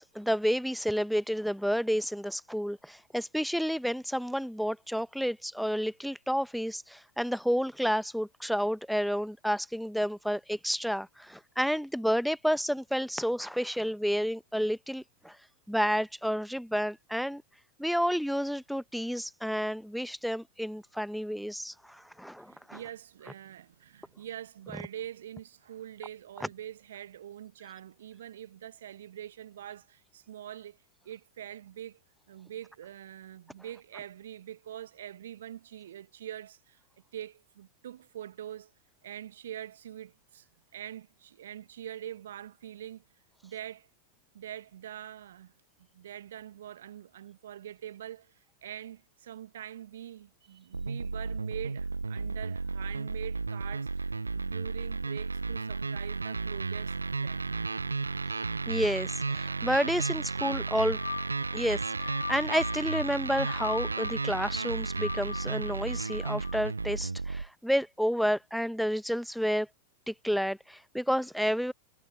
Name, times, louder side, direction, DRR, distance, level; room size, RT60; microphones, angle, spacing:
voice 1, 0.0-15.4 15.7-17.4 17.8-22.8 58.7-61.0 61.5-69.7 70.1-71.7, equal, ahead, 1.1 m, -30 dB
voice 2, 22.4-30.8 31.0-32.0 32.3-36.8 37.1-38.7 39.0-40.5 40.7-43.0 43.4-43.9 44.3-45.5 45.8-57.5, right 11 dB, 60° right, 1.0 m, -44 dB
sound 1, 50.7-67.5, right 4 dB, 80° right, 0.4 m, -33 dB
sound 2, 60.7-66.6, left 6 dB, 70° left, 2.3 m, -40 dB
figure-of-eight pair, 90°, 0 cm